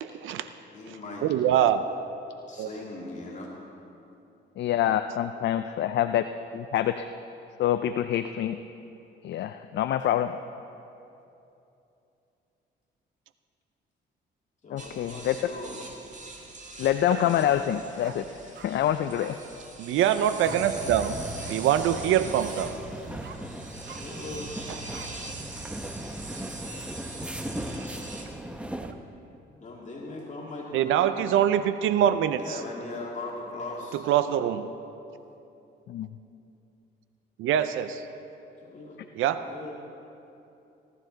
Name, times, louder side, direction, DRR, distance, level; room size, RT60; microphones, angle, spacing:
voice 1, 0.0-0.5 1.2-1.8 2.6-2.7 17.1-17.2 19.8-21.2 21.5-22.7 24.7-24.8 30.7-32.6 34.1-34.7 37.4-38.1 39.2-39.4, right 10 dB, 85° right, 11 dB, 0.5 m, -24 dB
voice 2, 0.7-1.3 2.5-3.5 14.6-15.8 23.9-24.7 29.5-31.2 32.4-34.1 38.6-39.0 39.4-39.8, left 2 dB, 35° left, -4 dB, 2.2 m, -39 dB
voice 3, 4.6-6.2 6.5-7.1 7.6-8.6 9.2-10.3 14.7-15.5 16.8-18.3 18.6-19.4 35.9-36.1, left 11 dB, 65° left, 9 dB, 0.4 m, -26 dB
sound 1, 14.8-28.3, right 3 dB, 40° right, 1.8 m, -43 dB
sound 2, 17.5-17.7 18.0-18.7 19.1-19.3 20.4-20.6 21.0-21.1 21.4-21.5 21.9-22.1 22.5-22.7 23.2-23.4 23.8-24.0 24.9-25.1, right 8 dB, 60° right, 0.8 m, -45 dB
sound 3, 20.4-28.9, right 1 dB, 5° right, 0.8 m, -38 dB
16.5 x 12.5 x 3.9 m, 2.8 s
cardioid pair, 90°, 20 cm